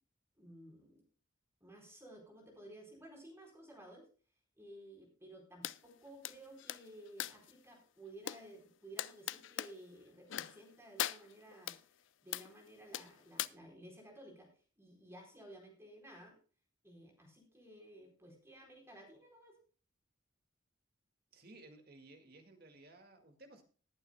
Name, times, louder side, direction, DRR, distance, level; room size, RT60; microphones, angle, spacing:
voice 1, 0.4-1.0 1.6-4.1 4.6-11.8 12.2-14.5 14.8-16.4 16.8-19.6, right 1 dB, 15° right, 1 dB, 4.1 m, -55 dB
sound 1, 5.6-5.8 6.2-7.5 8.3-8.4 9.0-9.7 10.3-10.7 11.0-11.8 12.3-12.5 12.9-13.5, left 12 dB, 70° left, 0.5 m, -40 dB
voice 2, 21.3-23.6, right 2 dB, 50° right, 5 dB, 2.0 m, -57 dB
20.0 x 8.9 x 2.2 m, 0.38 s
head